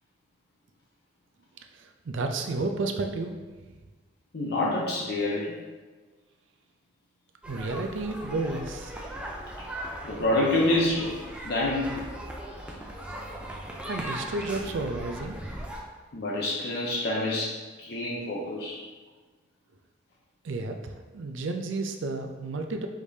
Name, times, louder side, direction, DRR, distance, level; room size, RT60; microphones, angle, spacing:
voice 1, 1.7-3.4 7.5-8.9 13.9-15.4 20.4-22.9, right 3 dB, 80° right, 5 dB, 0.4 m, -32 dB
voice 2, 4.3-5.5 10.0-11.1 11.4-11.9 16.1-18.8, left 1 dB, 55° left, -4 dB, 0.6 m, -27 dB
sound 1, 7.4-15.8, right 1 dB, 5° right, 0.3 m, -38 dB
4.9 x 3.4 x 2.7 m, 1.3 s
head